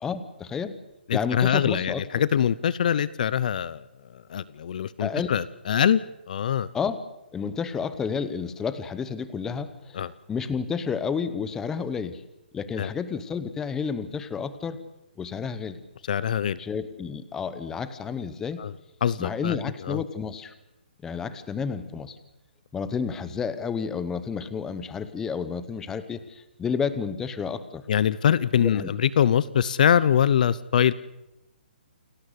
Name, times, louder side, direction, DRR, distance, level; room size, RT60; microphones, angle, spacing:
voice 1, 0.0-0.7 1.1-2.0 5.0-5.3 6.7-7.0 7.3-10.0 10.3-12.2 12.5-14.8 15.2-15.8 16.6-18.6 19.2-20.5 21.0-22.2 22.7-27.8 28.6-28.9, left 6 dB, 10° left, 13 dB, 1.0 m, -30 dB
voice 2, 1.1-3.9 4.1-6.0 6.3-6.7 9.9-10.1 12.8-12.9 16.1-16.6 18.6-18.7 19.0-20.0 27.9-30.9, left 9 dB, 50° left, 19 dB, 0.7 m, -23 dB
29.0 x 12.5 x 8.4 m, 0.92 s
hypercardioid pair, 160°, 6 cm